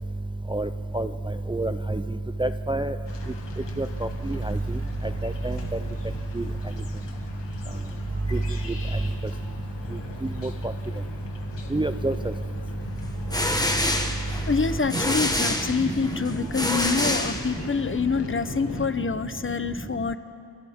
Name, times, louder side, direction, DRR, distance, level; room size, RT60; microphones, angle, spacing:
voice 1, 1.5-2.0 2.4-2.9 3.8-3.9 4.3-4.6 5.2-5.6 6.4-6.5 8.3-8.4 11.7-12.1 14.9-15.0, right 2 dB, 10° right, 9 dB, 0.4 m, -26 dB
sound 1, 3.0-18.9, left 3 dB, 85° left, 2.1 m, -39 dB
sound 2, 13.0-17.9, left 1 dB, 10° left, 1.4 m, -27 dB
voice 2, 14.5-20.2, left 5 dB, 30° left, 11 dB, 0.7 m, -26 dB
28.5 x 27.0 x 3.6 m, 2.5 s
wide cardioid pair, 110°, 42 cm